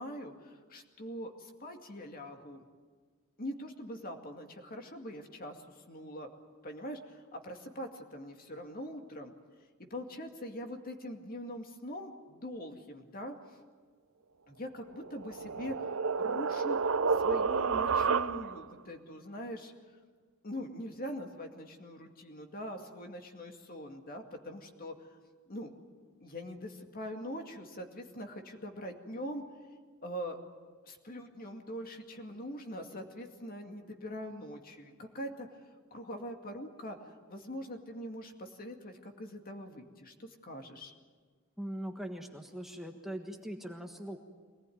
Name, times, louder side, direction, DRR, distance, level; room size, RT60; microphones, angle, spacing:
voice 1, 0.0-2.6 3.4-6.3 6.6-9.3 9.9-13.4 14.5-15.9 16.2-16.8 17.1-19.7 20.4-24.9 25.5-25.7 26.2-29.4 30.0-30.4 30.8-35.5 35.9-40.9, equal, 45° left, 4 dB, 2.3 m, -43 dB
sound 1, 14.9-18.7, right 5 dB, 70° right, 0.6 m, -30 dB
voice 2, 41.6-44.2, equal, ahead, 2 dB, 1.4 m, -41 dB
24.0 x 19.0 x 9.4 m, 1.5 s
head